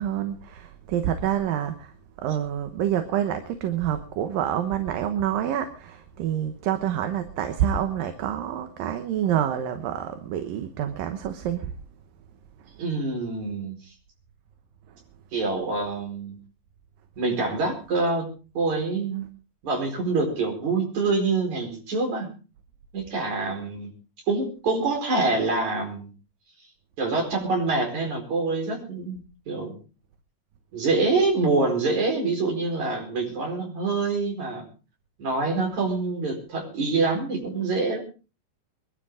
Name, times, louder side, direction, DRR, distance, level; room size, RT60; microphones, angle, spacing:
voice 1, 0.0-11.7, right 10 dB, 70° right, 8 dB, 2.7 m, -27 dB
voice 2, 12.8-13.8 15.3-16.4 17.2-18.3 18.5-19.3 19.6-22.3 22.9-23.9 24.3-26.1 27.0-29.2 29.5-29.8 30.7-34.7 35.2-38.0, right 3 dB, 50° right, 2 dB, 5.8 m, -25 dB
23.5 x 12.5 x 3.7 m, 0.34 s
omnidirectional pair, 4.4 m